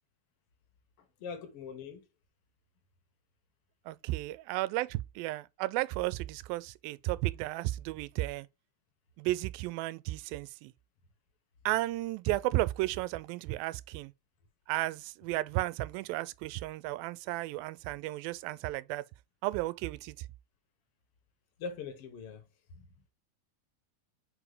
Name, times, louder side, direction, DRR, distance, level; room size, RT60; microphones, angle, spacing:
voice 1, 1.2-2.0 21.6-22.4 22.7-22.9, left 5 dB, 65° left, 1.5 m, -42 dB
voice 2, 3.9-8.5 9.2-10.7 11.7-14.1 14.7-19.0 19.4-20.3, right 18 dB, 90° right, 2.3 m, -33 dB
5.4 x 5.0 x 4.9 m
omnidirectional pair, 4.1 m